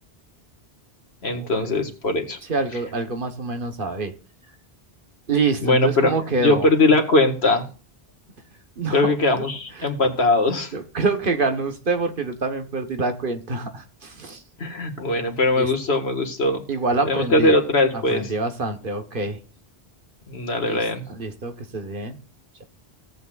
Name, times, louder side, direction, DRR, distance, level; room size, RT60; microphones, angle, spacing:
voice 1, 1.2-2.4 5.6-6.1 6.4-7.6 8.9-10.7 14.6-16.6 17.1-18.3 20.3-21.1, left 2 dB, 85° left, 5 dB, 2.1 m, -20 dB
voice 2, 2.5-4.1 5.3-6.7 8.8-9.5 9.8-9.9 10.7-14.4 15.6-15.7 16.7-17.5 17.9-19.4 20.6-20.8 21.1-22.2, right 3 dB, 55° right, 7 dB, 1.4 m, -26 dB
17.0 x 8.2 x 2.5 m, 0.35 s
omnidirectional pair, 1.0 m